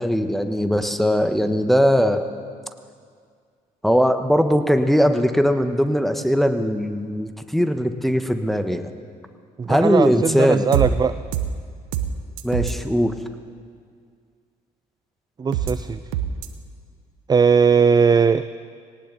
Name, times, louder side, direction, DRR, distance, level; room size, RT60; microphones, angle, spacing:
voice 1, 0.0-2.3 3.8-8.9 9.7-10.6 12.4-13.1, equal, ahead, 8 dB, 1.2 m, -20 dB
voice 2, 9.6-11.2 15.4-16.0 17.3-18.4, right 6 dB, 20° right, 13 dB, 0.4 m, -18 dB
sound 1, 10.7-10.9 11.3-11.5 11.9-12.1 12.4-12.7 15.5-15.7 16.1-16.5, right 11 dB, 80° right, 0.9 m, -23 dB
19.0 x 18.5 x 4.0 m, 2.1 s
hypercardioid pair, 50°, 21 cm